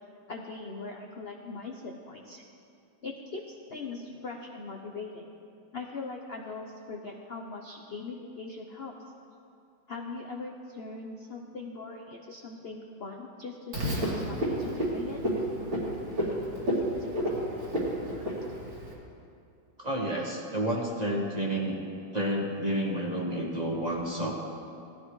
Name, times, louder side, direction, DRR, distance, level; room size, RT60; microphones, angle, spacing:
voice 1, 0.3-2.4 3.0-5.3 5.7-8.9 9.9-15.2, left 3 dB, 50° left, 0 dB, 0.7 m, -40 dB
Frog, 13.7-18.9, equal, 85° right, 3.4 m, -31 dB
voice 2, 19.8-21.7 22.1-24.3, right 1 dB, 25° right, -2 dB, 1.3 m, -30 dB
18.0 x 14.0 x 3.2 m, 2.5 s
omnidirectional pair, 2.1 m